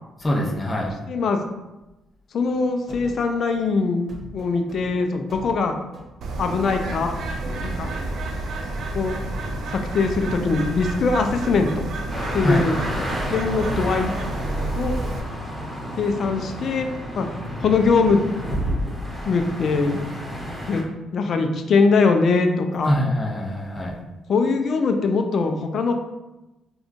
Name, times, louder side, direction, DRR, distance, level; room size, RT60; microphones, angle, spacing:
voice 1, 0.2-0.9 12.4-12.7 22.8-24.0, equal, 25° left, -2 dB, 0.7 m, -23 dB
voice 2, 1.1-1.4 2.3-5.8 6.4-7.2 7.8-7.9 8.9-9.1 9.7-11.9 12.3-12.7 13.3-14.1 14.8-15.0 16.0-16.9 17.2-17.3 17.6-18.2 19.3-20.0 20.7-20.8 21.1-23.0 24.3-26.0, left 4 dB, 60° left, 6 dB, 0.3 m, -21 dB
sound 1, 2.4-3.8 4.1-14.5, right 1 dB, 45° right, 0.9 m, -40 dB
Bird, 6.2-15.2, right 2 dB, 60° right, 0.4 m, -30 dB
sound 2, 12.1-20.8, equal, 15° right, 1.0 m, -31 dB
3.6 x 2.2 x 2.4 m, 1.0 s
hypercardioid pair, 50°, 0 cm